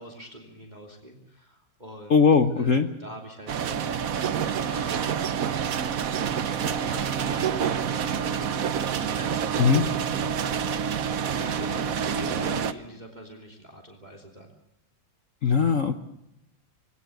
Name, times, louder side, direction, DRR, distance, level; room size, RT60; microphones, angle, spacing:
voice 1, 0.0-2.1 2.5-3.8 4.7-5.1 6.2-10.8 11.0-14.5, right 1 dB, 20° right, 1 dB, 3.0 m, -44 dB
voice 2, 2.1-2.9 9.6-9.8 15.4-15.9, left 5 dB, 50° left, 9 dB, 1.2 m, -19 dB
sound 1, 3.5-12.7, right 7 dB, 55° right, 1.2 m, -27 dB
23.5 x 17.5 x 7.8 m, 0.84 s
omnidirectional pair, 2.2 m